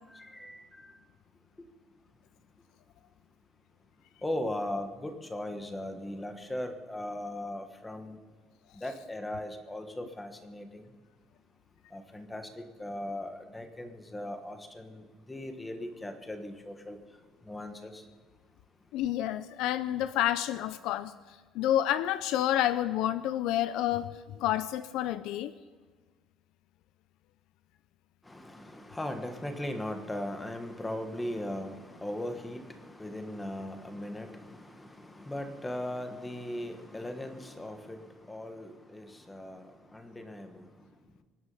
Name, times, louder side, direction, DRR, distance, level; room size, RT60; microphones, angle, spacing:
voice 1, 0.1-0.7 4.2-8.2 8.7-10.8 11.9-17.0 17.4-18.0 28.2-40.7, left 1 dB, 10° left, 7 dB, 1.3 m, -38 dB
voice 2, 18.9-25.5, left 12 dB, 60° left, 15 dB, 0.5 m, -29 dB
24.5 x 9.8 x 5.6 m, 1.5 s
cardioid pair, 170°, 0 cm